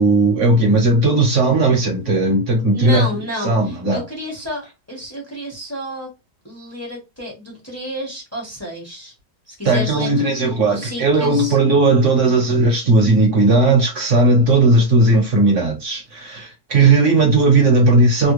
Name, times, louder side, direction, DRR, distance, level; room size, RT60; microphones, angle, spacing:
voice 1, 0.0-3.1 3.4-4.0 9.6-18.3, right 2 dB, 50° right, 1.0 m, -16 dB
voice 2, 2.7-6.1 6.4-9.1 9.5-11.6, equal, 10° left, 0.8 m, -31 dB
3.3 x 2.2 x 3.1 m
omnidirectional pair, 2.2 m